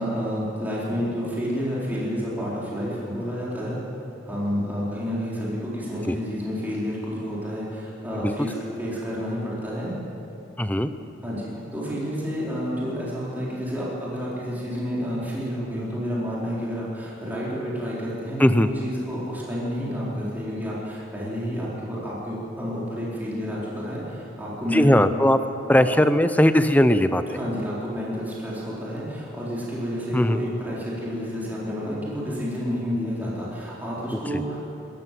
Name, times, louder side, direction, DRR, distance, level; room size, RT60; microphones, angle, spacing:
voice 1, 0.0-3.8 4.2-9.9 11.2-24.9 27.3-34.6, equal, 10° right, -7 dB, 4.3 m, -30 dB
voice 2, 10.6-10.9 18.4-18.7 24.7-25.4 25.7-27.4 30.1-30.4 34.3-34.4, left 1 dB, 10° left, 10 dB, 0.7 m, -19 dB
26.0 x 14.0 x 7.7 m, 2.9 s
head